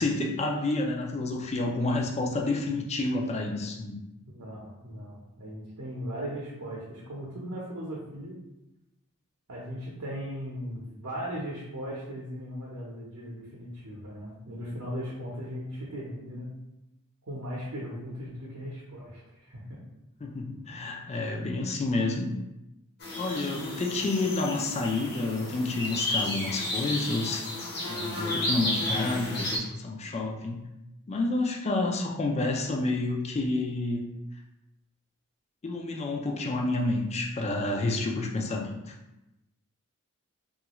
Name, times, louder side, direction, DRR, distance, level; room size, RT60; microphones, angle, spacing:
voice 1, 0.0-4.0 20.2-22.3 23.2-27.5 27.9-30.7 31.1-34.1 35.6-38.9, left 2 dB, 30° left, 1 dB, 0.4 m, -29 dB
voice 2, 4.3-8.4 9.5-16.5 17.3-19.8, equal, 70° right, -5 dB, 0.7 m, -38 dB
sound 1, 23.0-29.6, left 1 dB, 50° left, 1.0 m, -32 dB
3.1 x 2.4 x 2.9 m, 0.94 s
head